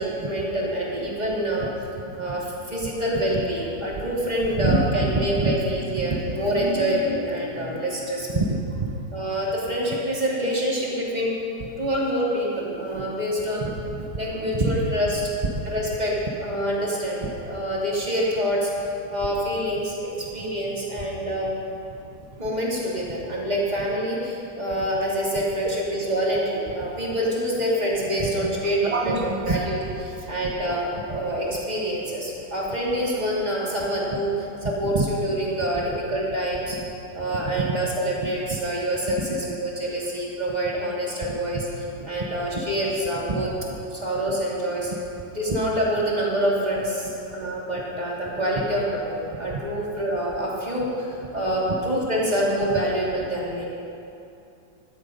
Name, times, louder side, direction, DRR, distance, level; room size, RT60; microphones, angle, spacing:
voice 1, 0.0-1.7 2.2-8.3 9.1-11.3 11.8-13.6 14.1-15.2 15.6-16.1 16.4-18.7 19.1-21.5 22.4-29.1 29.4-36.8 37.1-43.5 43.9-44.9 45.3-53.7, equal, 20° right, -5 dB, 2.7 m, -26 dB
voice 2, 4.4-5.1 5.4-5.5 6.1-6.2 8.3-8.9 13.6-13.7 14.5-14.9 15.4-15.6 25.6-25.8 28.2-29.6 31.1-31.2 34.8-35.1 37.6-37.7 38.2-38.3 39.3-39.4 41.5-41.6 43.3-43.4 45.5-45.6 49.5-49.6 52.7-52.8, right 2 dB, 60° right, 2 dB, 0.3 m, -26 dB
14.0 x 12.5 x 5.3 m, 2.7 s
omnidirectional pair, 2.1 m